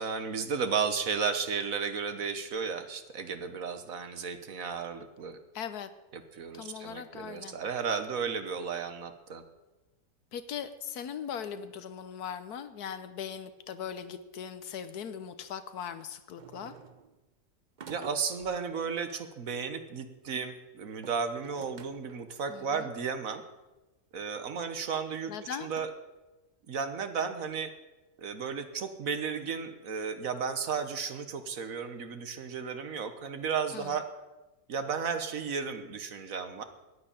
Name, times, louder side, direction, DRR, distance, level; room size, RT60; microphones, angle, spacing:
voice 1, 0.0-5.4 6.3-9.4 17.9-23.4 24.1-25.3 25.6-25.9 26.7-27.7 28.2-34.1 34.7-36.6, right 6 dB, 60° right, 9 dB, 1.5 m, -34 dB
voice 2, 5.5-5.9 6.5-7.6 10.3-16.8 22.5-22.9 25.3-25.7 33.7-34.0, left 8 dB, 75° left, 12 dB, 1.4 m, -39 dB
sound 1, 16.4-17.2 17.8-18.6 20.9-22.3 23.3-23.4 24.2-24.3 25.7-25.8, right 6 dB, 45° right, 0.6 m, -50 dB
10.0 x 9.8 x 10.0 m, 1.1 s
omnidirectional pair, 1.7 m